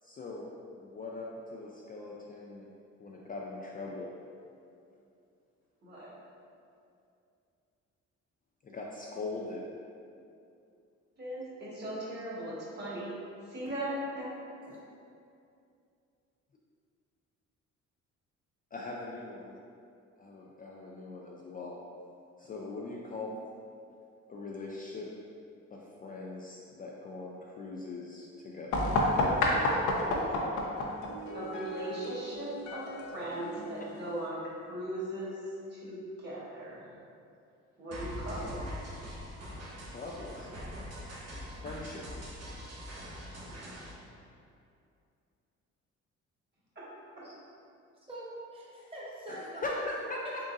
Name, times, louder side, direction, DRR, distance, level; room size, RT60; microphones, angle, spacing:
voice 1, 0.0-2.7 3.0-4.1 8.6-9.7 14.6-14.8 18.7-19.6 20.2-21.8 22.4-23.4 24.3-25.1 25.7-28.9 31.1-31.2 39.8-40.5 41.5-42.1 49.3-50.4, left 2 dB, 30° left, -3 dB, 0.4 m, -41 dB
voice 2, 11.2-13.1 13.5-14.3 31.3-35.4 35.7-36.9 37.8-38.5 46.7-46.8 47.2-47.3, right 1 dB, 35° right, -8 dB, 1.4 m, -38 dB
sound 1, 28.7-34.3, left 1 dB, 80° left, 0.7 m, -31 dB
sound 2, 37.9-43.9, equal, 55° right, 1.0 m, -42 dB
voice 3, 48.0-49.8 50.2-50.4, right 1 dB, 20° right, -7 dB, 1.1 m, -43 dB
3.8 x 3.7 x 2.5 m, 2.5 s
cardioid pair, 90°, 30 cm